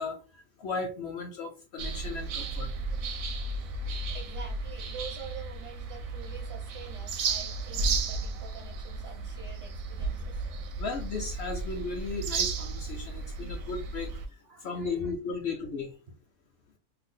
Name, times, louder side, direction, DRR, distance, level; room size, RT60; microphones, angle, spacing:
voice 1, 0.0-2.7 10.8-14.1 14.6-15.9, left 4 dB, 65° left, 3 dB, 0.7 m, -35 dB
sound 1, 1.8-14.3, right 3 dB, 75° right, 1.0 m, -34 dB
voice 2, 4.1-10.4 14.5-15.1, right 5 dB, 50° right, 0 dB, 0.9 m, -46 dB
2.6 x 2.3 x 3.7 m, 0.34 s
omnidirectional pair, 1.5 m